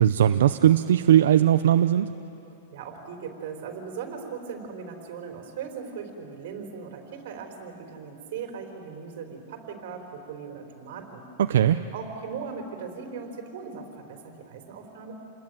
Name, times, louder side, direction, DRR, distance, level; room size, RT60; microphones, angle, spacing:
voice 1, 0.0-2.1 11.5-11.8, right 11 dB, 80° right, 9 dB, 0.6 m, -19 dB
voice 2, 2.5-11.3 11.9-15.1, right 6 dB, 50° right, 4 dB, 4.0 m, -38 dB
28.0 x 20.5 x 9.3 m, 2.7 s
supercardioid pair, 175°, 0 cm